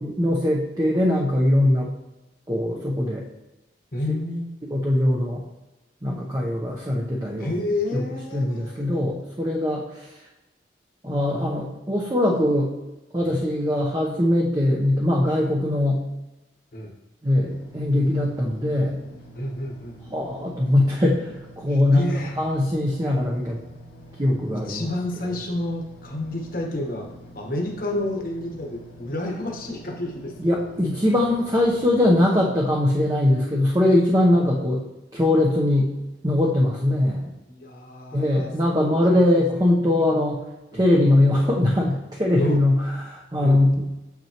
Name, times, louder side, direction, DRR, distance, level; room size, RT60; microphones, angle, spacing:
voice 1, 0.0-1.9 2.5-3.2 4.1-4.2 4.7-5.4 6.0-7.6 7.9-8.0 8.3-10.2 11.0-12.7 13.1-16.0 17.2-19.0 20.1-22.1 22.4-23.6 24.2-24.8 30.4-34.8 35.1-35.9 36.2-37.3 38.1-40.4 40.7-43.7, left 1 dB, 20° right, -3 dB, 0.8 m, -21 dB
voice 2, 3.9-4.5 7.4-9.0 13.2-13.4 16.7-16.9 19.3-20.0 21.7-22.3 24.5-27.1 27.3-30.6 34.3-34.5 37.5-38.5 38.8-38.9 39.1-39.4 39.7-40.2 40.7-40.8 42.4-42.6 43.4-43.6, left 1 dB, 50° left, 1 dB, 1.2 m, -30 dB
sound 1, 17.4-32.2, right 1 dB, 70° left, 1.7 m, -46 dB
7.7 x 5.9 x 3.0 m, 1.0 s
head